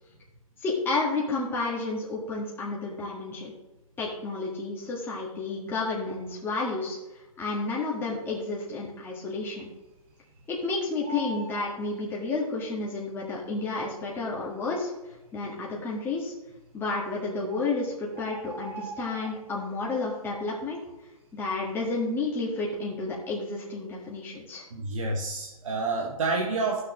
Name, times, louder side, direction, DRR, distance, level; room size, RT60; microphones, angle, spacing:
voice 1, 0.6-3.5 4.0-9.7 10.5-16.3 16.7-20.8 21.3-24.6, left 3 dB, 10° left, -4 dB, 1.7 m, -31 dB
Bird, 8.2-8.7 9.0-9.1 9.4-10.6 10.8-12.7 13.5-13.6 14.2-14.3 14.5-14.6 15.3-15.7 16.7-16.8 17.2-17.3 17.5-19.8 20.1-20.4 20.7-22.1 22.5-22.7, right 2 dB, 40° right, 2.3 m, -42 dB
voice 2, 24.7-26.8, right 3 dB, 60° right, 0 dB, 1.3 m, -28 dB
14.5 x 6.4 x 3.1 m, 1.0 s
figure-of-eight pair, 130°, 18 cm